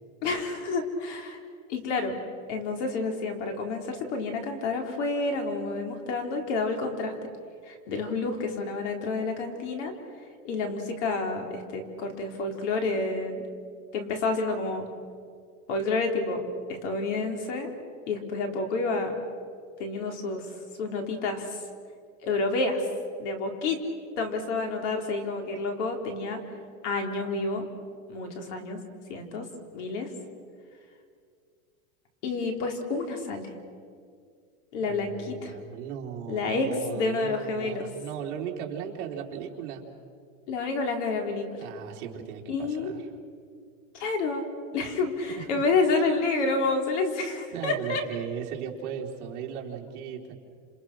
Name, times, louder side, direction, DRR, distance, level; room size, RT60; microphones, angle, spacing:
voice 1, 0.2-1.4 1.7-2.2 2.5-7.1 7.7-9.9 10.4-13.5 13.9-14.8 15.7-16.4 16.7-17.7 18.1-19.2 19.8-20.4 20.8-21.6 22.2-22.9 23.2-23.8 24.2-26.4 26.8-27.7 28.1-28.8 29.1-29.5 29.7-30.1 32.2-33.5 34.7-35.5 36.3-36.7 36.9-37.9 40.5-41.6 42.5-42.9 43.9-44.4 44.7-48.0, left 3 dB, 55° left, 4 dB, 4.1 m, -29 dB
voice 2, 34.9-39.9 41.6-43.0 45.3-45.6 47.5-50.3, right 8 dB, 55° right, 0 dB, 3.5 m, -37 dB
30.0 x 28.0 x 6.2 m, 2.2 s
supercardioid pair, 175°, 43 cm